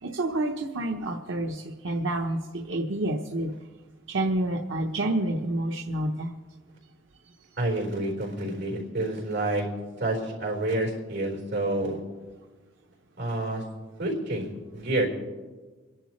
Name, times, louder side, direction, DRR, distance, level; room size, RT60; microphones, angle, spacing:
voice 1, 0.0-3.5 4.1-6.4, right 1 dB, 90° right, 2 dB, 0.9 m, -28 dB
voice 2, 7.6-9.7 10.0-12.0 13.2-13.6 14.0-14.5 14.7-15.1, right 1 dB, 65° right, -1 dB, 4.3 m, -28 dB
27.0 x 11.0 x 3.2 m, 1.3 s
head